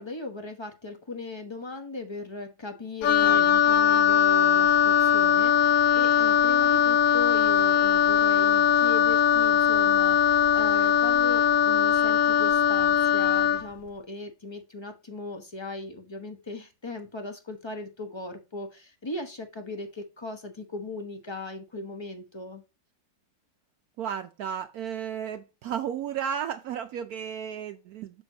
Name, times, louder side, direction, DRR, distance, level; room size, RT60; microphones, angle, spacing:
voice 1, 0.0-22.6, left 2 dB, 25° left, 0.7 m, -38 dB
Wind instrument woodwind instrument, 3.0-13.7, left 8 dB, 80° left, 0.8 m, -21 dB
voice 2, 24.0-28.2, right 8 dB, 75° right, 0.9 m, -33 dB
7.0 x 6.1 x 2.8 m
omnidirectional pair, 2.0 m